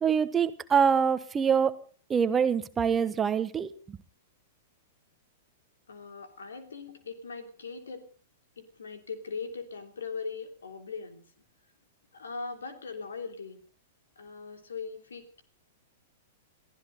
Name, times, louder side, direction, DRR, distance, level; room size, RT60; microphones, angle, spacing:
voice 1, 0.0-1.7 2.1-4.0, right 7 dB, 20° right, 13 dB, 1.1 m, -25 dB
voice 2, 5.9-8.1 8.6-11.2 12.1-13.6 14.2-15.4, left 4 dB, 75° left, 7 dB, 3.2 m, -40 dB
23.0 x 15.5 x 4.0 m, 0.39 s
figure-of-eight pair, 105°, 0 cm